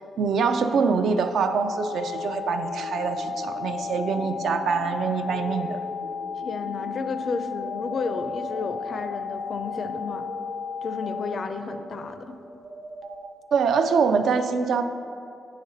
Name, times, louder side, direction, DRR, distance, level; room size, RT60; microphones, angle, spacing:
voice 1, 0.2-5.8 13.5-14.9, right 5 dB, 70° right, 8 dB, 0.4 m, -24 dB
sound 1, 1.3-11.3, left 7 dB, 85° left, 0.7 m, -34 dB
sound 2, 1.4-13.3, right 2 dB, 55° right, 1.0 m, -41 dB
voice 2, 6.3-10.3 10.8-12.3, left 4 dB, 50° left, 8 dB, 0.4 m, -32 dB
8.8 x 5.2 x 4.0 m, 2.5 s
cardioid pair, 120°, 0 cm